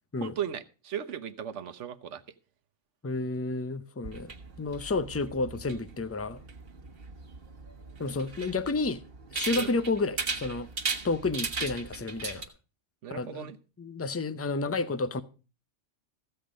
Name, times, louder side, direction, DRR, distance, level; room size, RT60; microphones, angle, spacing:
voice 1, 0.2-2.2 9.5-9.7 13.0-13.6, right 9 dB, 75° right, 1.2 m, -36 dB
voice 2, 3.0-4.3 4.6-6.4 8.0-9.0 9.3-10.7 11.0-12.4 13.1-13.5 13.8-15.2, left 3 dB, 20° left, 0.5 m, -31 dB
sound 1, 4.0-12.5, right 4 dB, 50° right, 1.6 m, -37 dB
15.0 x 7.9 x 5.1 m
omnidirectional pair, 1.3 m